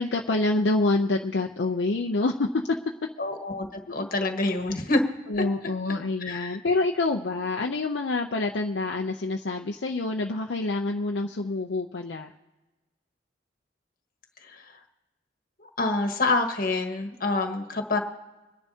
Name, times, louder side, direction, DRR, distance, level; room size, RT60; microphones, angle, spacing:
voice 1, 0.0-2.8 3.9-4.1 5.3-12.3, left 2 dB, 70° left, 2 dB, 0.6 m, -27 dB
voice 2, 3.2-5.0 5.4-5.5 6.2-6.6 14.4-14.8 15.6-18.0, left 2 dB, 50° left, 4 dB, 1.5 m, -27 dB
25.5 x 10.5 x 2.8 m, 1.1 s
head